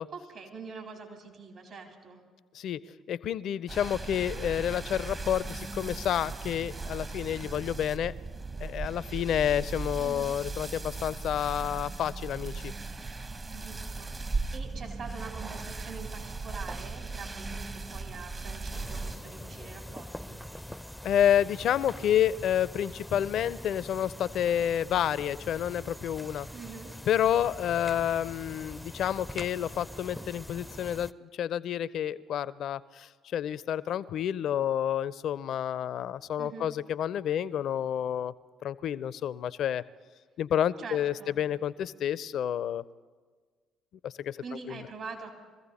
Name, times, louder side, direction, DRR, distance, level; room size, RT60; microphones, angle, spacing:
voice 1, 0.1-2.2 10.0-10.4 13.5-20.4 26.5-26.9 36.4-36.7 40.8-41.4 44.4-45.3, right 4 dB, 60° right, 2 dB, 3.7 m, -44 dB
voice 2, 3.1-8.1 8.6-12.7 21.0-26.5 27.1-38.3 38.6-39.8 40.4-42.8 44.0-44.4 44.7-44.8, left 10 dB, 60° left, 19 dB, 0.4 m, -29 dB
sound 1, 3.7-19.2, right 3 dB, 35° right, 1.0 m, -37 dB
sound 2, 18.7-31.1, left 1 dB, 5° left, 0.4 m, -43 dB
22.5 x 15.0 x 4.2 m, 1.5 s
hypercardioid pair, 50°, 0 cm